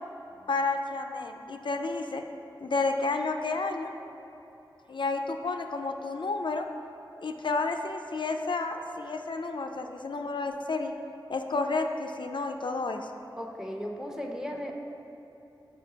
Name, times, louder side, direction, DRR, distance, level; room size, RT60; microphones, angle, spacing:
voice 1, 0.5-2.2 2.6-3.9 4.9-6.7 7.2-11.0 11.3-13.1, left 3 dB, 65° left, 5 dB, 0.4 m, -31 dB
voice 2, 13.4-14.7, equal, 5° right, 1 dB, 0.8 m, -36 dB
5.6 x 4.3 x 5.9 m, 3.0 s
cardioid pair, 40°, 9 cm